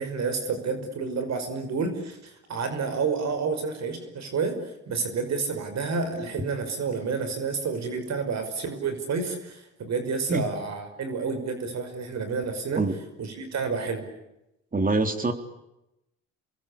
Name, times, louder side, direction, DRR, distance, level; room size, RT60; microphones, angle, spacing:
voice 1, 0.0-12.8 13.2-14.0, right 5 dB, 60° right, 8 dB, 5.7 m, -30 dB
voice 2, 14.7-15.3, right 2 dB, 30° right, 7 dB, 3.7 m, -24 dB
29.0 x 22.5 x 8.6 m, 0.89 s
cardioid pair, 90°, 30 cm